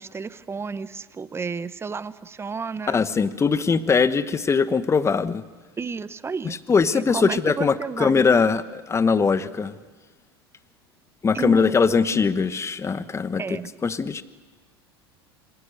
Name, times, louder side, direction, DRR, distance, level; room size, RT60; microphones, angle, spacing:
voice 1, 0.0-3.0 5.8-6.6 6.9-8.2 11.3-12.0 13.4-13.7, right 5 dB, 20° right, 16 dB, 1.0 m, -32 dB
voice 2, 2.9-5.4 6.4-9.7 11.2-13.4 13.8-14.2, left 5 dB, 20° left, 14 dB, 1.2 m, -21 dB
26.0 x 24.0 x 6.6 m, 1.4 s
hypercardioid pair, 80°, 13 cm